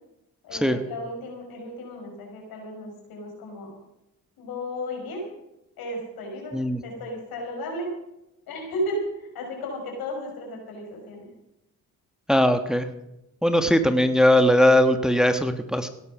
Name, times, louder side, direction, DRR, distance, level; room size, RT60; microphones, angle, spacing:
voice 1, 0.4-3.8 4.4-5.2 5.8-6.6 6.8-7.9 8.5-11.3, equal, 85° left, 1 dB, 5.6 m, -34 dB
voice 2, 12.3-12.9 13.4-15.9, left 1 dB, ahead, 8 dB, 1.4 m, -20 dB
17.0 x 11.0 x 6.3 m, 0.90 s
cardioid pair, 65°, 35 cm